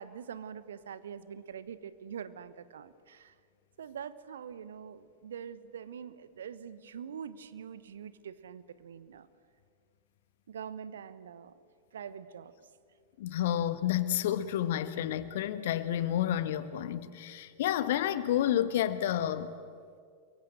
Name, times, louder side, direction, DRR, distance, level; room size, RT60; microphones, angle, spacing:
voice 1, 0.0-3.3 3.8-9.3 10.5-11.5 11.9-12.5, right 8 dB, 65° right, 1.2 m, -44 dB
voice 2, 13.2-19.5, left 11 dB, 55° left, 1.4 m, -30 dB
29.5 x 23.0 x 7.8 m
figure-of-eight pair, 90°, 0 cm